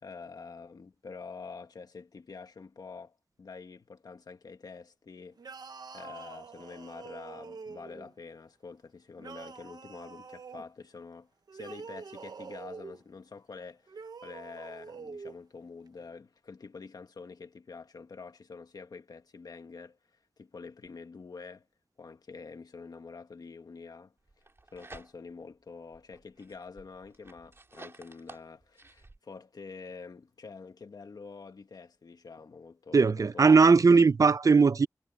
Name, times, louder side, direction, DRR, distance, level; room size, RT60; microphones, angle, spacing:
voice 1, 0.0-5.4 5.9-20.0 20.4-21.7 22.0-24.1 24.7-33.6, left 4 dB, 80° left, 1.8 m, -47 dB
sound 1, 5.4-8.1 9.2-10.7 11.5-13.0 13.9-15.4, right 5 dB, 85° right, 1.0 m, -45 dB
sound 2, 24.3-25.5 25.9-29.2, right 2 dB, 40° right, 2.4 m, -52 dB
voice 2, 32.9-34.9, right 4 dB, 60° right, 0.6 m, -19 dB
wide cardioid pair, 65°, 7 cm